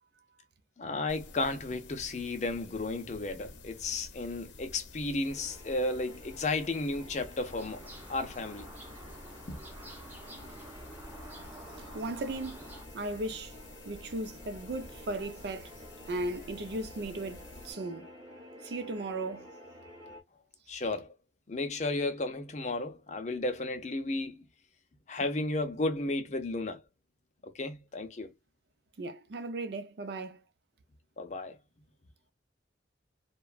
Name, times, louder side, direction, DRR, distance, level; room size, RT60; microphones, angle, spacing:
voice 1, 0.8-7.8 8.1-8.7 9.5-9.6 20.7-21.1 21.5-24.4 25.1-26.8 27.4-28.3 31.2-31.6, left 2 dB, 40° left, 0.5 m, -33 dB
sound 1, 1.1-17.7, left 2 dB, 75° left, 0.7 m, -50 dB
sound 2, 5.3-20.2, equal, 25° right, 1.0 m, -51 dB
sound 3, 7.4-12.9, right 1 dB, 10° right, 0.5 m, -50 dB
voice 2, 11.8-12.7 12.9-13.6 13.8-15.7 16.1-18.1 18.6-19.5 29.0-30.4, right 2 dB, 60° right, 0.5 m, -37 dB
2.9 x 2.2 x 2.3 m
head